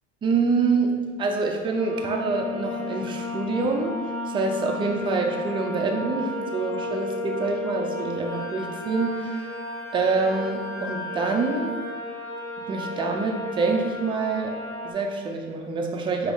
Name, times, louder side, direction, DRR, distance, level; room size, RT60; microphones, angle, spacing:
voice 1, 0.2-3.9 4.3-9.5 9.9-11.7 12.7-14.5 14.8-16.3, right 4 dB, 15° right, 2 dB, 0.3 m, -26 dB
sound 1, 1.8-14.9, left 2 dB, 50° left, 0.9 m, -33 dB
Wind instrument woodwind instrument, 8.3-12.0, left 4 dB, 85° left, 0.7 m, -41 dB
3.4 x 2.0 x 3.7 m, 1.5 s
hypercardioid pair, 65°, 33 cm